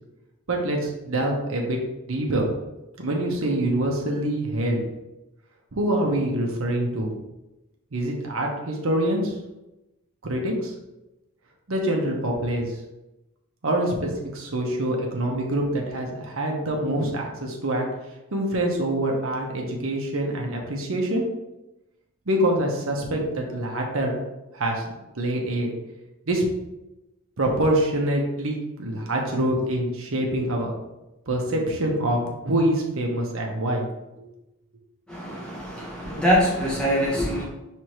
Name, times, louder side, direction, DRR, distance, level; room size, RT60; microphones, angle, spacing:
voice 1, 0.5-1.8 2.1-2.5 3.0-4.8 5.7-7.1 7.9-9.3 10.2-10.7 11.7-12.7 13.6-17.9 18.3-21.2 22.3-24.2 24.5-24.8 25.1-25.7 26.3-26.4 27.4-30.7 31.3-33.9 34.2-34.3, right 1 dB, 65° right, 0 dB, 0.8 m, -25 dB
voice 2, 35.1-37.4, equal, 5° left, -6 dB, 1.1 m, -24 dB
4.8 x 3.4 x 3.0 m, 0.96 s
head